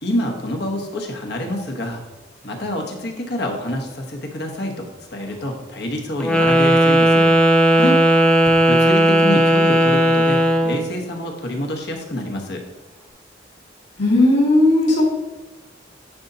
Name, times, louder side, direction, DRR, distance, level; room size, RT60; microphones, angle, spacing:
voice 1, 0.0-2.0 2.4-7.3 8.7-12.6, left 1 dB, 60° left, 1 dB, 1.1 m, -27 dB
Wind instrument woodwind instrument, 6.2-10.8, equal, 5° left, 0.5 m, -15 dB
voice 2, 14.0-15.0, left 1 dB, 75° left, -4 dB, 2.0 m, -16 dB
10.5 x 4.2 x 2.7 m, 1.2 s
head